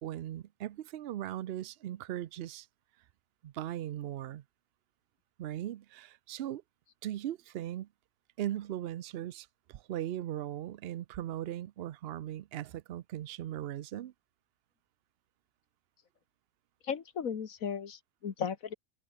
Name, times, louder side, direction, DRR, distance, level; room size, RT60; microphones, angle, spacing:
voice 1, 0.0-2.7 3.4-4.4 5.4-6.6 7.0-7.9 8.4-14.1, right 12 dB, 85° right, 0.5 m, -38 dB
voice 2, 16.8-18.7, left 7 dB, 60° left, 1.9 m, -36 dB
open air
omnidirectional pair, 1.7 m